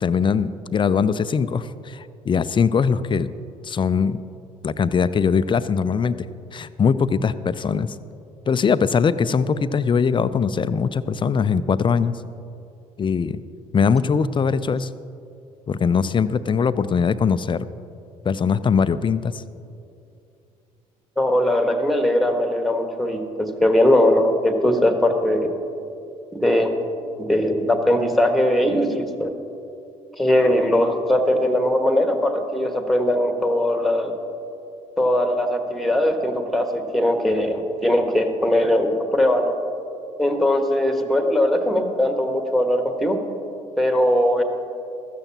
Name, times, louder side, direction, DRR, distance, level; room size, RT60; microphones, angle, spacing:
voice 1, 0.0-3.3 3.6-4.2 4.6-6.2 6.5-7.9 8.5-12.1 13.0-13.4 13.7-14.9 15.7-17.7 18.2-19.4, left 6 dB, 25° left, 15 dB, 0.5 m, -21 dB
voice 2, 21.2-25.5 26.3-26.7 27.2-29.3 30.2-34.1 35.0-39.6 40.2-43.2 43.8-44.4, left 1 dB, ahead, 5 dB, 1.5 m, -20 dB
15.5 x 13.5 x 2.9 m, 2.6 s
figure-of-eight pair, 50°, 18 cm